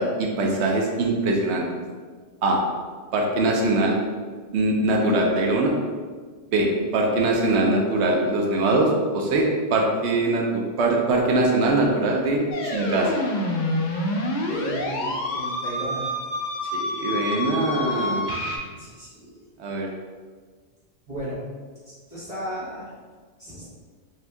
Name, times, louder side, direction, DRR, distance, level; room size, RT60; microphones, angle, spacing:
voice 1, 0.0-1.6 2.4-2.6 3.1-4.0 4.5-5.7 6.5-13.1 16.7-18.2 19.6-19.9, right 2 dB, 75° right, 0 dB, 0.8 m, -22 dB
sound 1, 12.5-18.6, left 1 dB, 60° left, 0.5 m, -27 dB
voice 2, 14.5-16.1 18.8-19.4 21.1-21.4 22.1-22.9 23.4-23.6, equal, 35° right, -13 dB, 1.1 m, -34 dB
2.7 x 2.5 x 3.3 m, 1.5 s
omnidirectional pair, 1.2 m